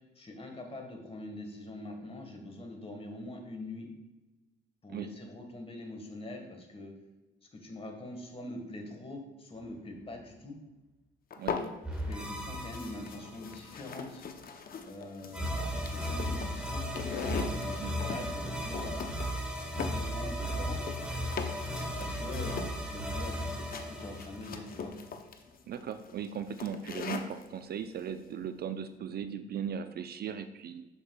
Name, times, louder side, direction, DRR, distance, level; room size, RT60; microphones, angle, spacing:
voice 1, 0.1-3.9 4.8-6.9 7.5-10.6 12.1-14.2 14.8-16.9 17.5-19.0 19.8-20.8 22.0-24.9, left 2 dB, 30° left, 3 dB, 1.4 m, -43 dB
sound 1, 11.3-12.2 12.5-27.5, left 5 dB, 45° left, 0.6 m, -41 dB
sound 2, 11.8-13.7 15.3-25.1, equal, 5° right, 1.1 m, -36 dB
voice 2, 17.6-18.0 25.7-30.9, right 8 dB, 55° right, 10 dB, 0.4 m, -38 dB
7.2 x 6.4 x 2.3 m, 1.1 s
cardioid pair, 90°, 20 cm